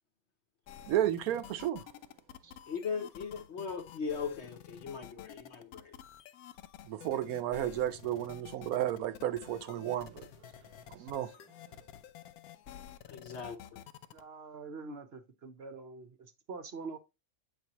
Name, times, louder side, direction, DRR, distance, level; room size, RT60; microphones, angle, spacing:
sound 1, 0.7-14.2, left 10 dB, 80° left, 1.1 m, -51 dB
voice 1, 0.8-1.8 6.8-10.3 10.9-11.3, right 12 dB, 80° right, 1.1 m, -32 dB
voice 2, 2.7-5.9 13.1-13.6, left 5 dB, 55° left, 1.0 m, -38 dB
voice 3, 14.1-17.0, right 4 dB, 55° right, 0.9 m, -45 dB
7.7 x 5.2 x 2.9 m
omnidirectional pair, 1.5 m